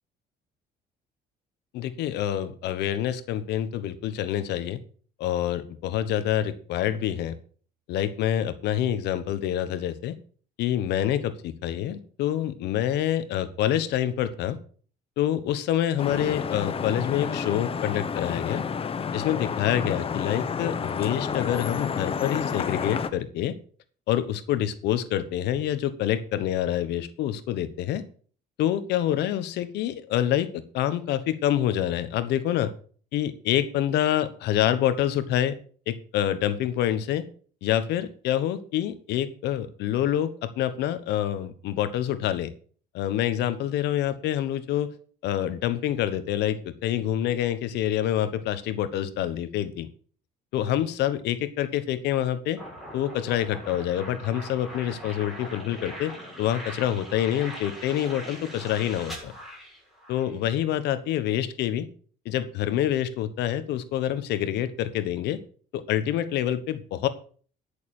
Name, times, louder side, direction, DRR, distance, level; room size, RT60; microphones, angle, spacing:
voice 1, 1.7-4.8 5.2-7.4 7.9-10.1 10.6-14.6 15.2-18.6 19.1-23.6 24.1-28.0 28.6-32.7 33.1-35.6 35.9-37.2 37.6-42.5 42.9-44.9 45.2-49.9 50.5-52.6 52.9-59.3 60.1-61.9 62.2-65.4 65.7-67.1, left 11 dB, 80° left, 13 dB, 1.2 m, -27 dB
Vehicle horn car horn honking / Traffic noise roadway noise, 16.0-23.1, left 6 dB, 35° left, 0.9 m, -30 dB
sound 1, 52.6-60.4, equal, ahead, 6.8 m, -41 dB
11.5 x 6.7 x 6.5 m, 0.43 s
cardioid pair, 110°, 17 cm